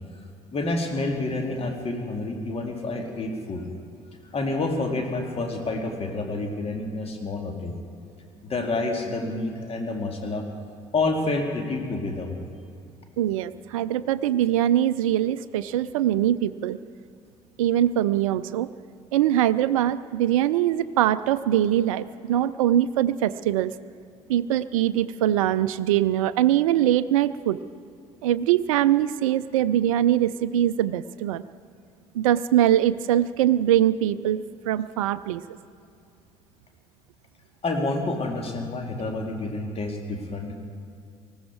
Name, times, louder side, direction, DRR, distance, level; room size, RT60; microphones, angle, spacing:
voice 1, 0.5-3.8 4.3-7.7 8.4-10.4 10.9-12.3 37.6-40.5, left 2 dB, 35° left, 2 dB, 2.3 m, -28 dB
voice 2, 13.2-16.8 17.6-18.7 19.1-23.7 24.3-27.6 28.2-31.4 32.1-34.4 34.7-35.4, right 12 dB, 75° right, 15 dB, 0.4 m, -22 dB
19.5 x 15.0 x 4.7 m, 2.4 s
figure-of-eight pair, 55°, 18 cm